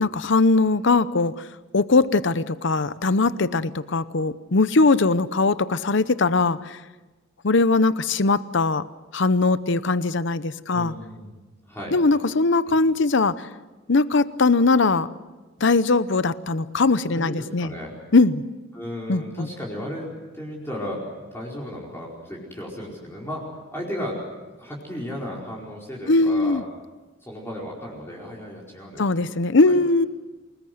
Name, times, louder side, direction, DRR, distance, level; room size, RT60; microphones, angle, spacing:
voice 1, 0.0-1.4 1.7-6.8 7.4-8.8 9.1-10.9 11.9-13.5 13.9-15.1 15.6-17.7 18.1-18.4 19.1-19.5 26.1-26.6 29.0-30.1, left 3 dB, 65° left, 15 dB, 0.8 m, -20 dB
voice 2, 10.7-11.9 12.7-12.8 17.1-17.9 18.7-20.1 20.3-23.4 23.7-24.2 24.6-26.6 27.2-29.2 29.5-29.8, equal, 10° left, -4 dB, 4.8 m, -35 dB
28.0 x 20.0 x 7.9 m, 1.2 s
head